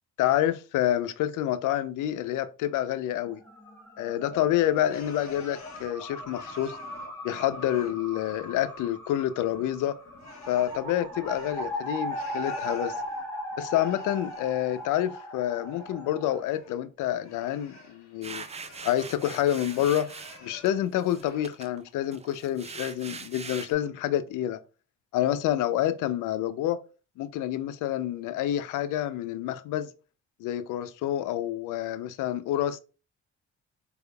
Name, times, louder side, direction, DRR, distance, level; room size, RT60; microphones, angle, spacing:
voice 1, 0.2-3.4 4.0-6.8 7.2-10.0 10.5-13.0 13.6-18.4 18.8-20.1 20.4-24.6 25.1-26.8 27.2-29.9 30.4-32.8, left 12 dB, 85° left, 0.5 m, -28 dB
sound 1, 3.2-16.4, equal, 10° left, 1.3 m, -38 dB
sound 2, 4.3-7.2 7.5-8.9 9.1-13.2 13.7-15.1 15.5-18.9 19.3-20.8 21.0-21.5, left 4 dB, 65° left, 1.7 m, -49 dB
sound 3, 18.2-20.7 21.0-23.7, right 5 dB, 20° right, 0.4 m, -42 dB
4.2 x 3.5 x 2.2 m
cardioid pair, 90°, 30 cm